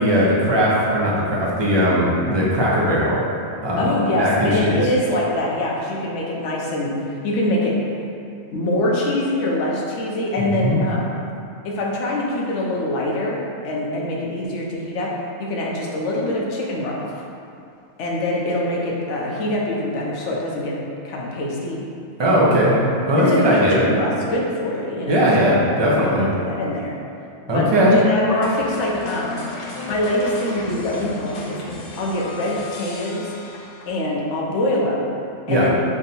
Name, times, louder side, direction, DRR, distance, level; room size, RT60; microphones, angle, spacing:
voice 1, 0.0-3.2 3.6-4.8 10.4-10.8 22.2-22.8 23.1-23.8 25.1-26.3 27.5-28.0 35.5-35.7, equal, 30° right, -6 dB, 0.6 m, -18 dB
voice 2, 3.8-7.7 8.5-11.1 11.6-15.1 15.4-17.1 18.0-20.7 21.0-21.9 23.2-25.2 26.1-27.0 27.5-29.4 29.9-31.6 32.0-33.3 33.9-35.1 35.5-35.8, left 1 dB, 80° left, -3 dB, 1.0 m, -24 dB
sound 1, 28.4-34.1, left 3 dB, 60° left, 0.7 m, -34 dB
3.5 x 2.6 x 4.1 m, 2.6 s
omnidirectional pair, 1.2 m